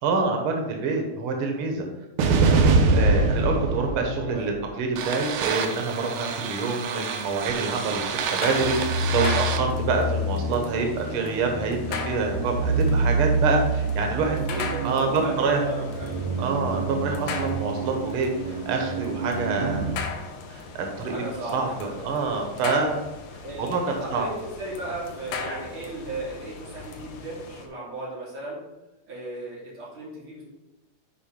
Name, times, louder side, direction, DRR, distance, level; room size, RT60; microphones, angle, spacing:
voice 1, 0.0-1.8 2.5-15.6 16.4-19.8 20.5-21.1 21.5-23.0 23.6-24.3, right 4 dB, 90° right, 3 dB, 1.2 m, -27 dB
sound 1, 2.2-20.0, right 3 dB, 70° right, 1.9 m, -26 dB
voice 2, 3.7-4.5 14.2-16.2 21.1-22.3 22.6-22.9 23.4-28.6 29.1-30.4, right 2 dB, 35° right, -6 dB, 3.6 m, -36 dB
sound 2, 7.7-27.6, left 5 dB, 70° left, 2.2 m, -39 dB
8.3 x 4.9 x 5.2 m, 0.96 s
omnidirectional pair, 4.1 m